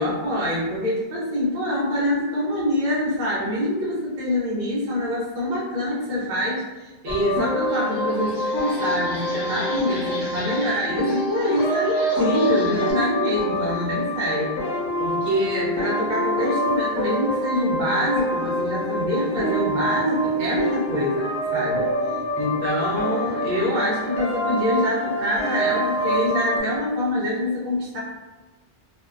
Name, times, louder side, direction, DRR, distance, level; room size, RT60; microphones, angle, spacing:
voice 1, 0.0-14.5 15.0-21.9 22.3-28.0, left 1 dB, 50° right, -6 dB, 0.7 m, -25 dB
sound 1, 7.1-26.6, equal, 80° left, 0.8 m, -26 dB
sound 2, 7.1-7.2 7.6-12.9, left 1 dB, 45° left, 0.3 m, -38 dB
2.6 x 2.1 x 2.3 m, 1.2 s
omnidirectional pair, 1.1 m